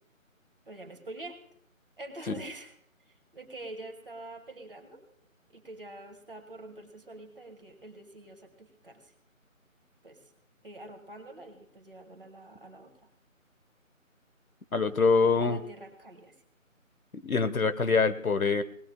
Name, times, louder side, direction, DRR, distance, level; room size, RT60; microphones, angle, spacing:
voice 1, 0.7-1.4 2.0-2.7 3.3-5.0 5.5-9.0 10.0-10.2 10.6-12.9 15.2-16.3, right 1 dB, 40° right, 5 dB, 2.2 m, -45 dB
voice 2, 14.7-15.6 17.2-18.6, left 4 dB, 85° left, 12 dB, 1.3 m, -24 dB
21.5 x 19.5 x 2.3 m, 0.67 s
figure-of-eight pair, 175°, 41 cm